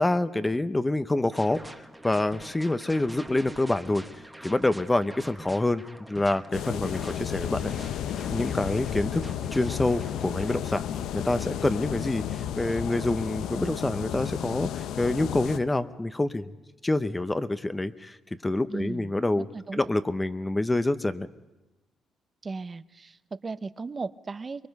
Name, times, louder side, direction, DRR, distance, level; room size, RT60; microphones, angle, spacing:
voice 1, 0.0-4.0 4.4-5.8 6.1-7.7 8.3-9.2 9.5-10.9 11.1-16.5 16.8-18.2 18.4-19.4 19.7-21.3, left 2 dB, 15° left, 12 dB, 0.8 m, -27 dB
sound 1, 1.3-10.7, right 1 dB, 5° right, 1.2 m, -45 dB
sound 2, 6.5-15.6, left 10 dB, 85° left, 0.6 m, -32 dB
voice 2, 18.7-19.9 22.4-24.7, right 4 dB, 30° right, 14 dB, 0.7 m, -36 dB
23.5 x 21.5 x 5.4 m, 1.0 s
cardioid pair, 90°, 0 cm